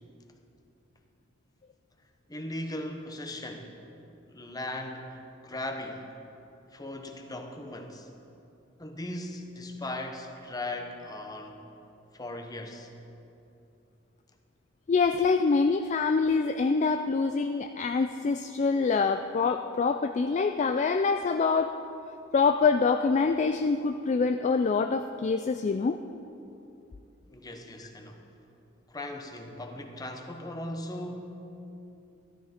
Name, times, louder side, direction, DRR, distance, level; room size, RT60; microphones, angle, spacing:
voice 1, 2.3-3.7 4.3-6.1 6.7-8.1 8.8-11.6 12.1-12.9 27.3-28.3 28.9-31.2, left 1 dB, 20° left, 4 dB, 0.9 m, -38 dB
voice 2, 14.9-21.7 22.3-26.0, left 4 dB, 35° left, 7 dB, 0.3 m, -25 dB
14.0 x 12.5 x 4.3 m, 2.7 s
head